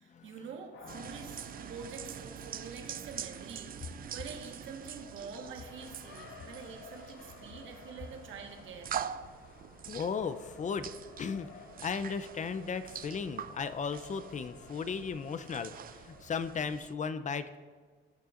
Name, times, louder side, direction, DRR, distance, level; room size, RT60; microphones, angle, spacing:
voice 1, 0.0-8.9, right 5 dB, 75° right, 2 dB, 1.5 m, -46 dB
Race car auto racing, 0.7-16.6, left 5 dB, 65° left, 1.0 m, -54 dB
sound 1, 0.9-16.9, right 9 dB, 45° right, 0.4 m, -45 dB
voice 2, 9.9-10.9 11.2-11.5 11.8-17.6, left 5 dB, 40° left, 12 dB, 0.6 m, -36 dB
17.5 x 6.8 x 2.5 m, 1.5 s
cardioid pair, 90°, 20 cm